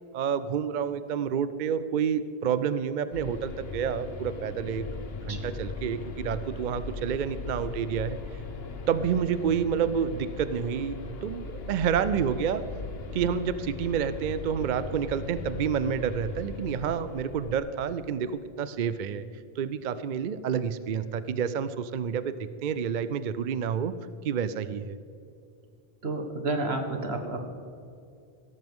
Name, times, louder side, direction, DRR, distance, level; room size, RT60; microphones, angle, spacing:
voice 1, 0.1-8.2 8.9-12.6 13.1-19.2 19.6-22.3 22.6-23.9 24.2-25.0, right 7 dB, 55° right, 13 dB, 0.6 m, -29 dB
sound 1, 3.1-17.6, left 4 dB, 75° left, 1.2 m, -39 dB
voice 2, 26.0-27.5, right 2 dB, 85° right, 4 dB, 1.7 m, -30 dB
16.5 x 14.0 x 3.7 m, 2.5 s
omnidirectional pair, 1.0 m